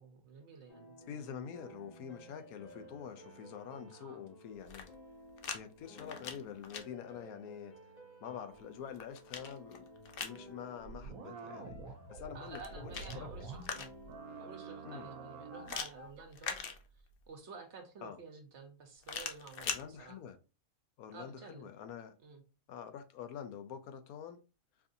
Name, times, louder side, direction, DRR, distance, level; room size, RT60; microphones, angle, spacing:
voice 1, 0.0-1.0 3.9-4.2 12.3-13.9 14.4-16.6 17.3-20.1 21.1-21.7 22.2-22.4, right 5 dB, 55° right, 1.1 m, -51 dB
sound 1, 0.7-16.1, left 1 dB, 35° left, 0.8 m, -55 dB
voice 2, 1.1-4.9 5.5-7.8 8.2-9.9 10.2-11.8 12.1-13.3 14.8-15.1 18.0-18.2 19.6-20.4 21.0-22.1 22.7-24.4, left 8 dB, 90° left, 1.1 m, -46 dB
sound 2, 4.5-5.6 5.9-6.8 8.5-10.4 12.4-14.2 15.7-17.2 19.0-19.8, left 6 dB, 60° left, 0.6 m, -42 dB
sound 3, 10.8-13.8 14.1-15.9 16.2-16.3, right 4 dB, 85° right, 1.2 m, -48 dB
4.7 x 2.7 x 2.5 m
omnidirectional pair, 1.5 m